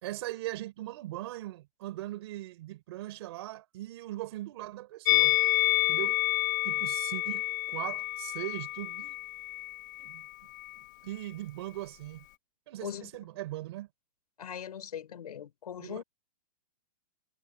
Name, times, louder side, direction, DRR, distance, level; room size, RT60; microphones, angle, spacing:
voice 1, 0.0-5.4 5.9-6.2 6.6-9.2 10.0-10.3 10.8-12.3 12.7-13.9 15.8-16.0, right 16 dB, 45° right, 3.9 m, -40 dB
Musical instrument, 5.0-10.3 10.5-10.8, left 16 dB, 30° left, 0.5 m, -29 dB
voice 2, 14.4-16.0, left 9 dB, 85° left, 5.6 m, -40 dB
hypercardioid pair, 170°, 19 cm